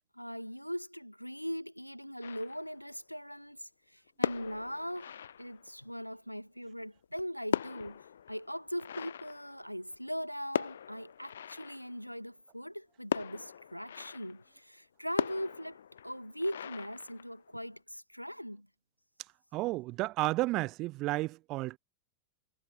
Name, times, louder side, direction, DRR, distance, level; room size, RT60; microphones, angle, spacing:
voice 1, 0.1-18.7, equal, 90° left, 5.1 m, -40 dB
sound 1, 2.2-2.9 4.1-5.9 7.0-10.1 10.5-12.1 13.1-14.5 15.2-17.7, left 8 dB, 65° left, 3.4 m, -39 dB
voice 2, 19.5-21.8, right 20 dB, 40° right, 4.4 m, -32 dB
figure-of-eight pair, 90°, 0 cm